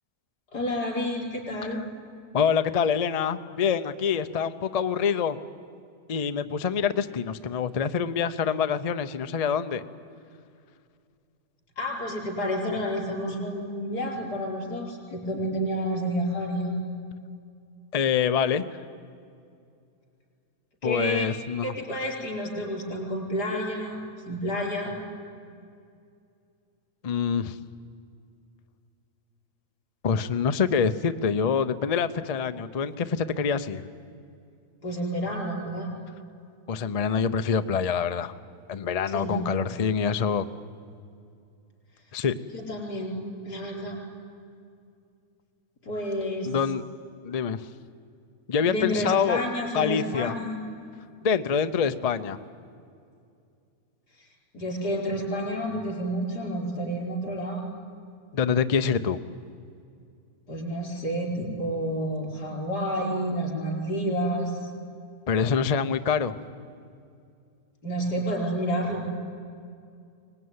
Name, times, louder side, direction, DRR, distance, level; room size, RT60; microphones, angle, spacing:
voice 1, 0.5-1.8 11.8-16.8 20.8-21.3 21.6-24.0 24.3-24.9 34.8-35.9 39.1-39.4 42.5-43.1 43.4-44.0 45.8-46.5 48.6-50.6 54.2-54.3 54.5-57.6 60.5-64.7 67.8-69.1, equal, 85° left, 0 dB, 5.2 m, -30 dB
voice 2, 2.3-5.4 6.1-9.8 17.9-18.6 20.8-21.7 27.0-27.6 30.0-33.8 36.7-38.3 38.7-40.5 42.1-42.3 46.4-46.8 47.2-47.7 48.5-49.4 49.7-50.3 51.2-52.4 58.3-59.2 65.3-66.3, left 6 dB, 45° left, 10 dB, 0.4 m, -25 dB
23.5 x 19.5 x 9.6 m, 2.4 s
omnidirectional pair, 1.7 m